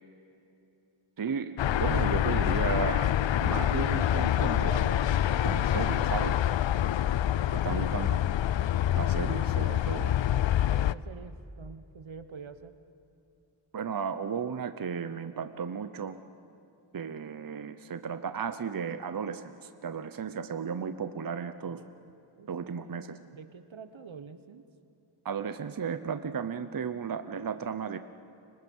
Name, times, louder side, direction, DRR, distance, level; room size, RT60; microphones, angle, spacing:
voice 1, 1.2-5.0 5.4-6.4 7.5-8.2 8.9-10.2 13.7-16.2 16.9-21.8 22.5-23.2 25.2-28.0, right 6 dB, 45° right, 10 dB, 0.8 m, -34 dB
sound 1, 1.6-10.9, left 11 dB, 65° left, 0.6 m, -26 dB
voice 2, 7.5-7.9 10.7-12.7 21.6-21.8 22.4-22.5 23.2-24.6, right 5 dB, 70° right, 10 dB, 1.3 m, -46 dB
29.5 x 25.5 x 5.5 m, 2.9 s
cardioid pair, 65°, 49 cm